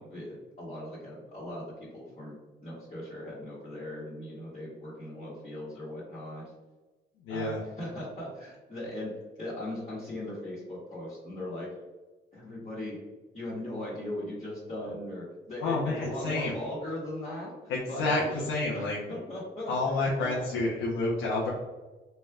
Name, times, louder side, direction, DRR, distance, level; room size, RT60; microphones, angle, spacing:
voice 1, 0.0-6.4 7.3-11.7 12.3-13.0 13.3-18.5 18.7-20.5, left 1 dB, 35° left, -9 dB, 1.4 m, -39 dB
voice 2, 7.2-7.6 15.6-16.5 17.7-19.0 19.7-21.5, left 2 dB, 90° left, -4 dB, 0.8 m, -29 dB
4.1 x 3.3 x 2.4 m, 1.2 s
cardioid pair, 90°, 20 cm